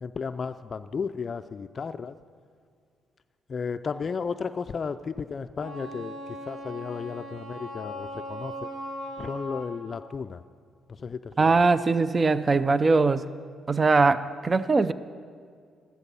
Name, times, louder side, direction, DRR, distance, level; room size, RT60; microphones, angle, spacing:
voice 1, 0.0-2.1 3.5-8.7 9.2-10.4 10.9-11.5, left 5 dB, 40° left, 10 dB, 0.4 m, -34 dB
Wind instrument woodwind instrument, 5.6-9.9, equal, 65° right, 2.5 m, -39 dB
voice 2, 11.4-13.3 13.7-14.9, right 3 dB, 30° right, 15 dB, 0.4 m, -21 dB
14.0 x 12.0 x 5.5 m, 2.1 s
cardioid pair, 90°, 0 cm